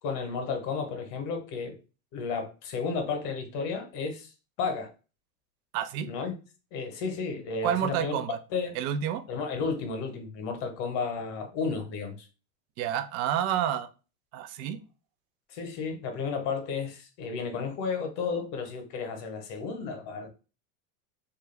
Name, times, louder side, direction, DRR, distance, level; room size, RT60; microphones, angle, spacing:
voice 1, 0.0-1.8 2.1-4.3 4.6-4.9 6.0-6.4 6.7-8.2 8.5-8.8 9.3-12.3 15.5-20.3, left 5 dB, 55° left, 1.0 m, -32 dB
voice 2, 5.7-6.1 7.6-8.4 8.7-9.2 12.8-13.9 14.3-14.8, right 10 dB, 60° right, 0.6 m, -29 dB
2.4 x 2.2 x 3.2 m
hypercardioid pair, 95°, 47 cm